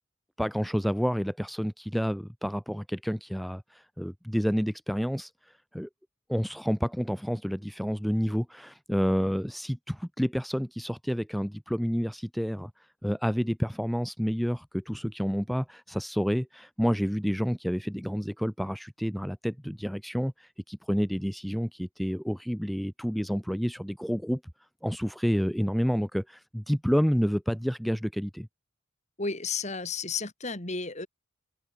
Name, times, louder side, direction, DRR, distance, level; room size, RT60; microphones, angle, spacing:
voice 1, 0.4-5.9 6.3-12.7 13.0-24.4 24.8-28.5, equal, ahead, 0.8 m, -29 dB
voice 2, 29.2-31.1, left 4 dB, 35° left, 3.3 m, -32 dB
head